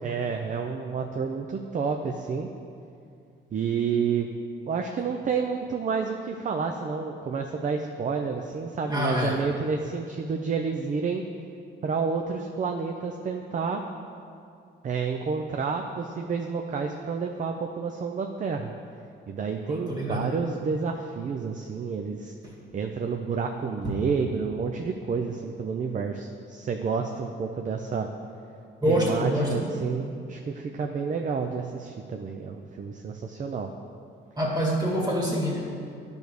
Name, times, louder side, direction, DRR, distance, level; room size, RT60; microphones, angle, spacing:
voice 1, 0.0-2.5 3.5-4.3 4.7-11.2 11.8-13.8 14.8-18.7 19.3-22.3 22.7-28.1 28.9-33.7, right 5 dB, 40° right, 4 dB, 0.5 m, -30 dB
voice 2, 8.9-9.4 19.7-20.4 22.4-22.5 23.8-24.0 28.8-29.7 34.4-35.6, equal, 20° right, -3 dB, 2.1 m, -26 dB
10.5 x 3.5 x 6.2 m, 2.5 s
cardioid pair, 90°, 20 cm